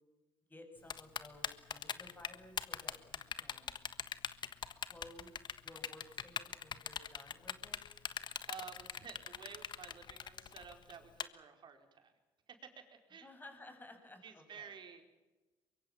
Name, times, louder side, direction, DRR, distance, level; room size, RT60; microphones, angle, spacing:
voice 1, 0.5-3.8 4.2-4.4 4.7-5.3 5.6-7.8 13.2-14.7, left 1 dB, 20° left, 4 dB, 7.4 m, -56 dB
Typing, 0.9-11.2, left 8 dB, 50° left, 1.4 m, -41 dB
voice 2, 8.5-12.1 12.5-13.3 14.2-15.0, right 7 dB, 50° right, 5 dB, 4.7 m, -52 dB
23.5 x 23.0 x 7.3 m, 1.1 s
supercardioid pair, 80°, 10 cm